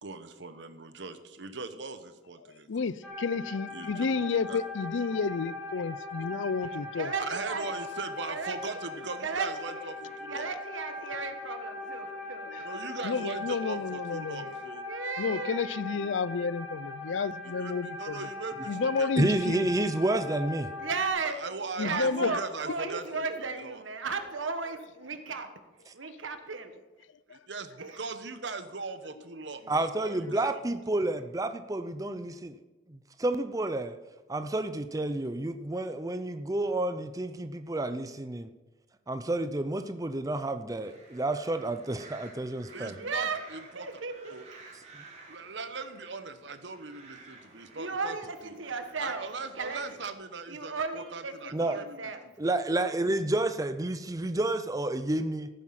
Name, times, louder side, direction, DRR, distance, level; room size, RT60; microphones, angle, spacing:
voice 1, 0.0-2.9 3.7-4.1 4.5-4.6 7.2-10.5 12.6-14.8 17.6-19.1 19.5-19.6 21.2-23.8 27.3-27.7 28.0-30.6 30.9-31.0 42.7-43.9 44.3-44.4 45.3-48.2 48.4-48.6 49.0-52.1, right 4 dB, 65° right, 1.1 m, -40 dB
voice 2, 2.4-7.1 9.5-9.6 11.2-11.3 12.4-12.7 13.0-14.7 15.2-18.3 18.7-19.7 21.8-22.4 27.3-27.4, left 5 dB, 75° left, 0.5 m, -31 dB
sound 1, 3.0-21.1, left 2 dB, ahead, 2.0 m, -40 dB
voice 3, 7.0-7.7 8.3-8.8 9.2-9.7 10.3-12.7 14.9-15.8 20.8-21.4 21.8-25.5 26.0-26.7 27.8-28.0 30.0-30.2 42.7-43.4 43.7-44.3 47.5-49.2 49.6-49.8 50.5-52.2, right 4 dB, 90° right, 1.4 m, -35 dB
voice 4, 19.2-20.7 29.7-32.6 32.9-34.0 34.3-38.4 39.1-43.0 44.9-45.0 51.5-51.8 52.4-55.5, right 2 dB, 20° right, 0.5 m, -30 dB
sound 2, 40.8-50.1, right 3 dB, 35° right, 3.0 m, -53 dB
15.0 x 9.2 x 5.9 m
head